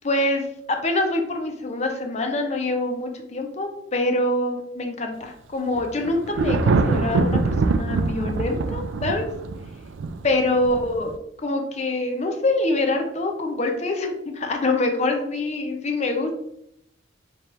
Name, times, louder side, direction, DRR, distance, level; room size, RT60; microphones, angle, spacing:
voice 1, 0.0-9.3 10.2-11.1 11.4-16.4, left 2 dB, 35° left, 4 dB, 0.6 m, -25 dB
Thunder, 5.7-11.2, right 3 dB, 75° right, 0.3 m, -24 dB
5.1 x 3.0 x 3.0 m, 0.75 s
head